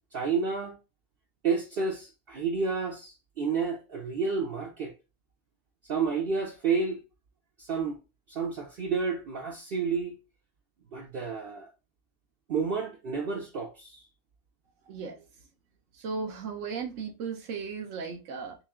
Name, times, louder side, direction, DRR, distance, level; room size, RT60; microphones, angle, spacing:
voice 1, 0.1-0.8 1.4-4.9 5.9-7.0 7.6-8.0 8.3-10.2 10.9-11.7 12.5-14.0, right 5 dB, 55° right, 0.8 m, -30 dB
voice 2, 14.9-15.2 15.9-18.6, right 5 dB, 80° right, 1.1 m, -36 dB
3.2 x 3.0 x 3.5 m
omnidirectional pair, 1.3 m